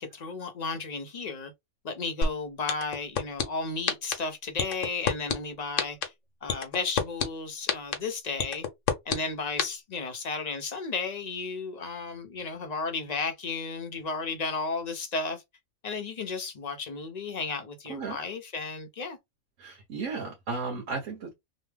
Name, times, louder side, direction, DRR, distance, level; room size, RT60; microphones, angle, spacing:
voice 1, 0.0-1.5 1.8-6.0 6.4-8.6 9.1-15.4 15.8-19.2, left 4 dB, 50° left, 0.5 m, -33 dB
sound 1, 2.2-2.3 2.7-3.4 3.9-4.1 4.6-5.3 5.8-6.0 6.5-7.2 7.7-7.9 8.4-9.2 9.6-9.7, left 6 dB, 85° left, 1.1 m, -25 dB
voice 2, 19.6-21.3, right 4 dB, 85° right, 1.2 m, -34 dB
3.1 x 2.1 x 3.2 m
omnidirectional pair, 1.3 m